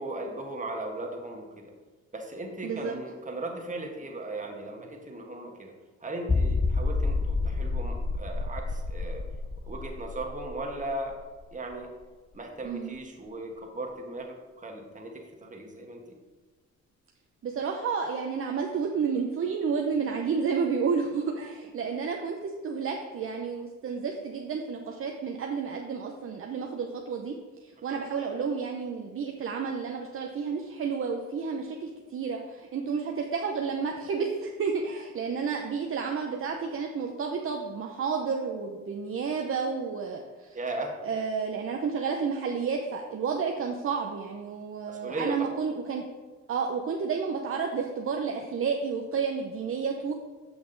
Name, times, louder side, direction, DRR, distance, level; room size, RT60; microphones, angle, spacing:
voice 1, 0.0-1.7 2.1-5.7 6.0-9.2 9.7-11.2 11.5-11.9 12.3-16.2 40.5-41.0 44.9-45.4, right 2 dB, 25° right, 1 dB, 1.5 m, -37 dB
voice 2, 2.6-3.0 12.6-12.9 17.4-27.3 27.6-40.6 41.0-46.0 46.5-50.1, right 5 dB, 45° right, 2 dB, 0.7 m, -31 dB
sound 1, 6.3-11.7 12.0-12.1 12.6-12.7, left 3 dB, 15° left, 0.3 m, -29 dB
7.8 x 5.8 x 3.9 m, 1.3 s
cardioid pair, 90°, 30 cm